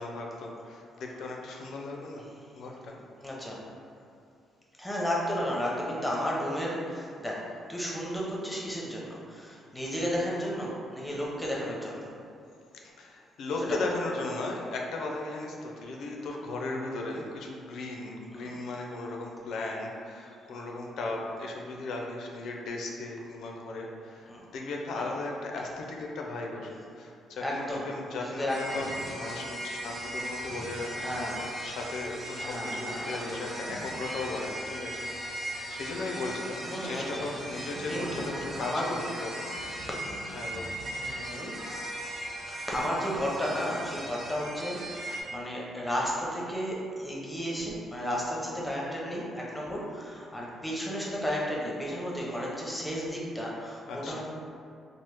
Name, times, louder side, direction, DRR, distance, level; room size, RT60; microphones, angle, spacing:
voice 1, 0.0-2.3 2.6-3.0 12.8-39.5 40.3-40.7 41.0-41.7 53.9-54.2, left 2 dB, 70° left, 0 dB, 0.4 m, -37 dB
voice 2, 3.2-3.6 4.8-12.1 13.6-13.9 18.3-18.5 24.3-24.5 24.9-25.1 27.4-28.8 31.0-31.5 32.4-33.4 34.7-35.0 36.6-38.2 38.6-39.0 40.9-41.6 42.5-54.2, equal, 10° left, -4 dB, 0.6 m, -33 dB
sound 1, 28.5-45.2, right 1 dB, 30° right, 0.7 m, -38 dB
3.0 x 2.0 x 3.3 m, 2.5 s
cardioid pair, 90°, 0 cm